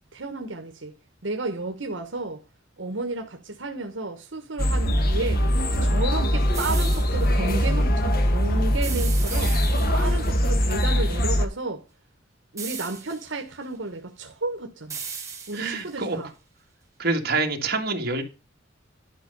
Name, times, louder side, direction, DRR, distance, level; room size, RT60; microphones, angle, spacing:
voice 1, 0.1-0.9 1.2-2.4 2.8-5.4 5.8-11.8 12.5-15.0 15.5-16.3, right 2 dB, 80° right, 1.3 m, -32 dB
sound 1, 4.6-11.5, equal, 50° left, 1.5 m, -22 dB
sound 2, 6.5-7.3 8.8-10.2 12.6-13.4 14.9-15.9, right 6 dB, 15° right, 2.9 m, -36 dB
voice 2, 15.5-16.2 17.0-18.2, right 3 dB, 55° right, 1.9 m, -26 dB
11.5 x 5.4 x 5.4 m
head